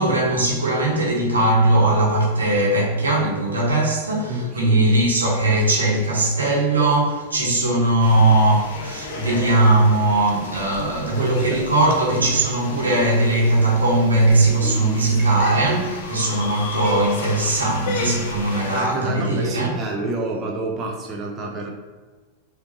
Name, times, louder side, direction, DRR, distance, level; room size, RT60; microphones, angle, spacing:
voice 1, 0.0-19.7, right 2 dB, 75° right, -4 dB, 1.3 m, -19 dB
voice 2, 4.3-4.8 11.1-11.6 15.2-15.3 18.7-21.7, right 1 dB, 25° right, -1 dB, 0.6 m, -28 dB
sound 1, 8.0-18.8, left 2 dB, 50° left, 0.7 m, -33 dB
4.9 x 2.9 x 3.0 m, 1.3 s
figure-of-eight pair, 90°, 0 cm